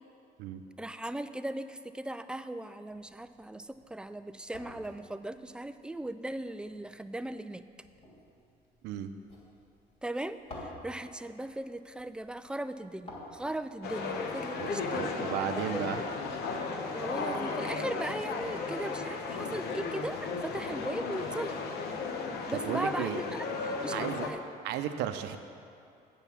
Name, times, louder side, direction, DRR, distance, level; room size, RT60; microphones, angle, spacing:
voice 1, 0.8-7.6 10.0-16.0 16.9-21.6 22.5-24.4, right 1 dB, 5° right, 11 dB, 0.3 m, -38 dB
sound 1, 2.9-15.8, left 1 dB, 40° left, 2.7 m, -53 dB
sound 2, 13.8-24.3, left 4 dB, 75° left, 1.0 m, -35 dB
voice 2, 14.6-16.0 22.7-23.2 23.9-24.3 24.6-25.4, right 10 dB, 90° right, 8 dB, 0.6 m, -34 dB
8.2 x 6.8 x 7.1 m, 2.5 s
cardioid pair, 110°, 17 cm